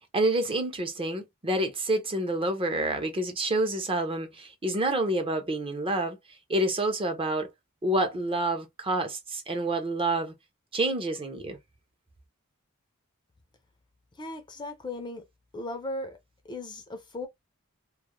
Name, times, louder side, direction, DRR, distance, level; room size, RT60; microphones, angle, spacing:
voice 1, 0.1-6.2 6.5-7.5 7.8-10.3 10.7-11.6, right 1 dB, 25° right, 0.6 m, -28 dB
voice 2, 14.2-15.2 15.5-16.2 16.4-17.3, left 2 dB, 20° left, 0.5 m, -37 dB
2.3 x 2.1 x 2.9 m
head